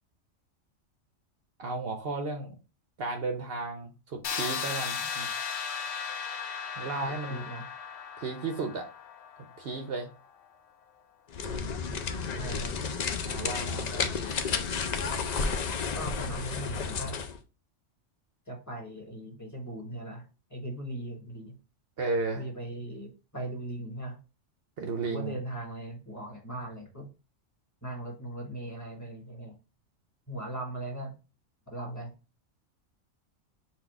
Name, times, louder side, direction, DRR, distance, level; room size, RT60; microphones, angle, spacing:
voice 1, 1.6-2.5 3.0-5.3 6.8-7.4 8.2-8.9 9.6-10.1 13.3-14.2 22.0-22.5 24.8-25.4, right 3 dB, 55° right, 4 dB, 0.8 m, -34 dB
sound 1, 4.2-10.0, left 6 dB, 65° left, 0.8 m, -36 dB
voice 2, 7.0-7.7 12.3-12.8 15.9-17.2 18.5-21.6 22.4-24.2 25.0-27.1 27.8-29.5 30.3-31.2 31.7-32.1, right 1 dB, 15° left, 0 dB, 1.4 m, -39 dB
sound 2, 11.3-17.4, left 5 dB, 80° left, 0.3 m, -32 dB
4.2 x 2.4 x 4.6 m, 0.32 s
omnidirectional pair, 1.4 m